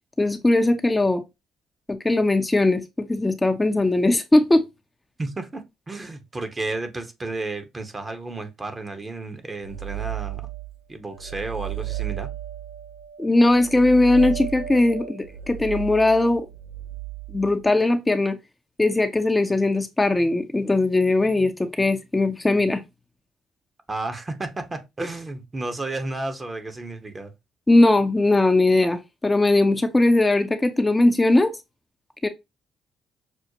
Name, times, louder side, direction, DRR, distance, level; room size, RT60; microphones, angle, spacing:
voice 1, 0.2-1.2 1.9-4.6 13.2-16.5 17.3-18.4 18.8-22.8 27.7-31.6 32.2-32.3, left 2 dB, 15° left, 0.5 m, -19 dB
voice 2, 5.2-10.5 10.9-12.3 23.9-27.3, right 2 dB, 30° right, 0.9 m, -32 dB
sound 1, 9.6-10.8 11.1-17.7, right 12 dB, 85° right, 0.4 m, -34 dB
6.1 x 2.1 x 2.7 m
hypercardioid pair, 55°, 0 cm